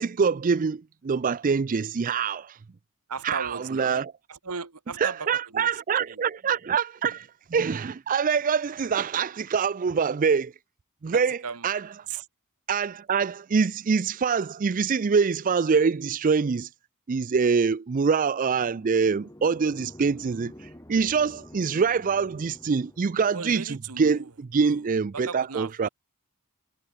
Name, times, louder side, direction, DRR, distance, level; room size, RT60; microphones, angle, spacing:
voice 1, 0.0-2.6 3.2-4.1 5.0-10.5 11.0-11.4 11.6-11.9 12.7-16.7 17.1-25.9, right 5 dB, 35° right, 0.4 m, -25 dB
voice 2, 3.1-4.0 4.3-5.7 6.1-6.2 11.1-11.7 12.1-12.3 23.3-24.3 24.6-24.8 25.1-25.9, right 5 dB, 85° right, 1.7 m, -37 dB
sound 1, 18.5-23.4, equal, 15° left, 4.2 m, -48 dB
head